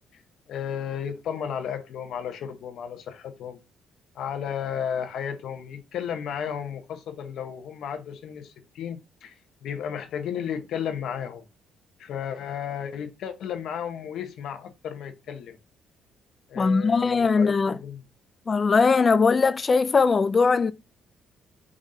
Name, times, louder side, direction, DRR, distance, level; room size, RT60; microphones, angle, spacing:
voice 1, 0.5-3.6 4.1-11.5 12.0-15.6 16.5-18.0, left 8 dB, 70° left, 0.9 m, -33 dB
voice 2, 16.6-17.8 18.5-20.7, left 4 dB, 35° left, 0.3 m, -20 dB
5.1 x 3.5 x 2.7 m
cardioid pair, 95°, 0 cm